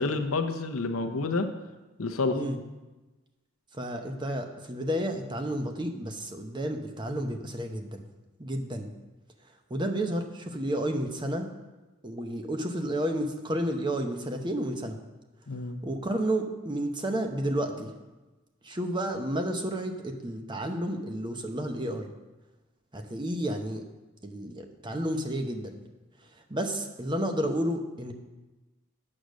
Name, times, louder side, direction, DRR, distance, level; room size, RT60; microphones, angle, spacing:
voice 1, 0.0-1.5 2.0-2.4 15.5-15.8, left 3 dB, 85° left, 7 dB, 0.8 m, -29 dB
voice 2, 3.7-8.0 8.4-8.9 9.7-11.5 12.0-15.0 15.8-17.9 18.6-22.1 22.9-23.8 24.2-25.8 26.3-28.1, right 1 dB, 20° right, 5 dB, 0.8 m, -31 dB
8.6 x 6.5 x 6.3 m, 1.1 s
head